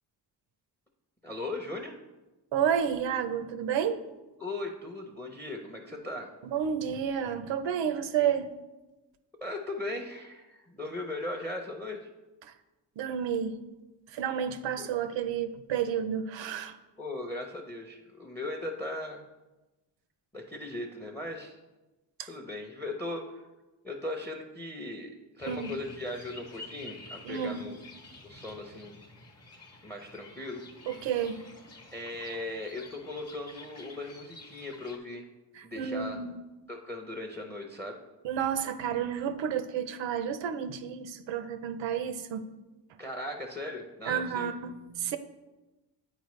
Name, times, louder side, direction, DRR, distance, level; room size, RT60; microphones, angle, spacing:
voice 1, 1.2-2.0 4.4-6.3 9.4-12.1 14.8-14.9 17.0-19.2 20.3-21.6 22.3-23.2 23.8-27.8 28.2-29.0 29.8-30.6 31.9-35.3 35.6-36.2 36.7-38.0 43.0-44.5, left 2 dB, 5° left, 3 dB, 0.6 m, -38 dB
voice 2, 2.5-4.0 6.4-8.5 12.4-12.5 13.0-13.6 14.1-16.8 22.2-22.3 25.4-25.7 27.2-27.6 30.9-31.4 35.5-36.4 38.2-42.5 44.1-45.2, right 8 dB, 85° right, 11 dB, 0.6 m, -31 dB
sound 1, 25.4-35.0, left 3 dB, 35° left, 1.0 m, -50 dB
8.1 x 4.5 x 3.1 m, 1.1 s
cardioid pair, 95°, 44 cm